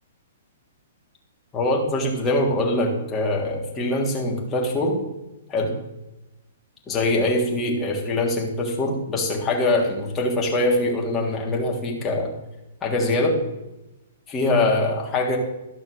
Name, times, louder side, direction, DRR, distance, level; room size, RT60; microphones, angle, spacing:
voice 1, 1.5-5.0 5.5-5.7 6.9-12.3 12.8-13.4 14.3-15.4, left 2 dB, 20° left, -2 dB, 3.3 m, -23 dB
13.0 x 6.1 x 6.6 m, 0.97 s
hypercardioid pair, 125°, 0 cm